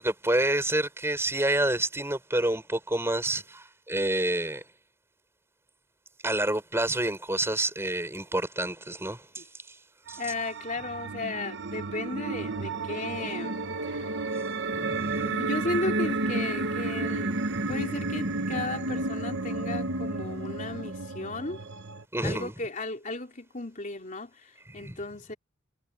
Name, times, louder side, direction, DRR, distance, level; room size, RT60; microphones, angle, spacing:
voice 1, 0.0-4.6 6.2-9.4 10.1-10.2 14.7-15.4 17.6-17.7 22.1-22.5 24.8-25.0, right 1 dB, 10° right, 5.3 m, -28 dB
sound 1, 10.1-22.0, right 2 dB, 60° right, 1.2 m, -32 dB
voice 2, 10.2-14.1 15.2-17.4 17.7-21.6 22.2-25.3, left 2 dB, 40° left, 3.5 m, -35 dB
head